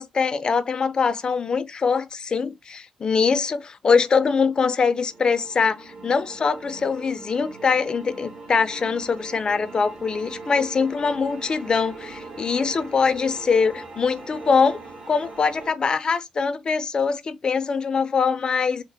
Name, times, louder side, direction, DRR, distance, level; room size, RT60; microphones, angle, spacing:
voice 1, 0.0-14.8 15.1-18.8, left 5 dB, 35° left, 0.4 m, -23 dB
sound 1, 4.5-15.7, right 3 dB, 45° right, 1.3 m, -41 dB
3.1 x 2.0 x 3.8 m
cardioid pair, 115°, 2 cm